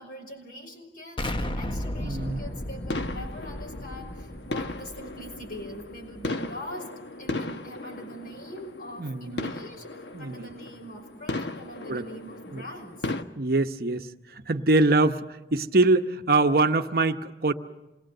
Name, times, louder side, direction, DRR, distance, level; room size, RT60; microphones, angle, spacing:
voice 1, 0.0-13.1, equal, 55° left, 1 dB, 5.9 m, -42 dB
Explosion, 1.2-6.0, left 1 dB, 30° left, 0.9 m, -34 dB
voice 2, 2.0-2.4 9.0-9.5 10.1-10.5 11.9-12.1 12.5-12.6 13.4-17.5, right 2 dB, 55° right, 7 dB, 0.9 m, -24 dB
sound 1, 2.2-13.2, left 2 dB, 85° left, 1.2 m, -37 dB
27.5 x 21.0 x 7.8 m, 1.1 s
head